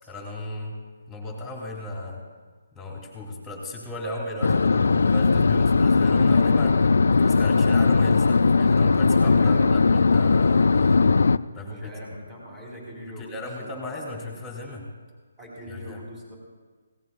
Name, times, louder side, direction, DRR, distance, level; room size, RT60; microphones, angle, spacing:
voice 1, 0.0-0.7 1.1-2.2 2.7-11.1 11.5-12.2 13.1-14.8 15.7-16.0, left 1 dB, 5° left, -1 dB, 2.5 m, -36 dB
sound 1, 4.4-11.4, left 4 dB, 80° left, 0.3 m, -19 dB
voice 2, 9.0-9.9 11.5-14.0 15.4-16.4, equal, 15° right, -3 dB, 4.1 m, -41 dB
20.0 x 17.0 x 2.4 m, 1.4 s
hypercardioid pair, 160°, 0 cm